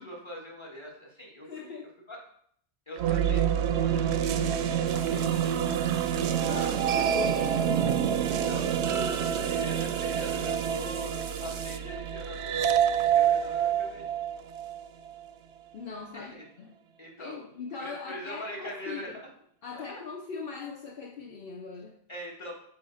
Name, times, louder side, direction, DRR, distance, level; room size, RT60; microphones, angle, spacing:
voice 1, 0.0-2.2 2.9-5.6 8.3-8.8 9.4-14.1 16.1-16.4 17.0-17.4 17.8-19.2 19.7-20.0 22.1-22.5, equal, 25° left, -2 dB, 1.7 m, -43 dB
voice 2, 1.4-1.9 6.4-8.6 8.9-9.2 15.7-16.3 16.6-16.7 17.2-19.1 19.6-22.0, left 5 dB, 65° left, 0 dB, 0.9 m, -40 dB
sound 1, 3.0-15.1, right 9 dB, 90° right, 0.8 m, -27 dB
sound 2, 4.9-11.8, right 5 dB, 40° right, 0.4 m, -44 dB
7.9 x 3.6 x 5.6 m, 0.65 s
omnidirectional pair, 1.1 m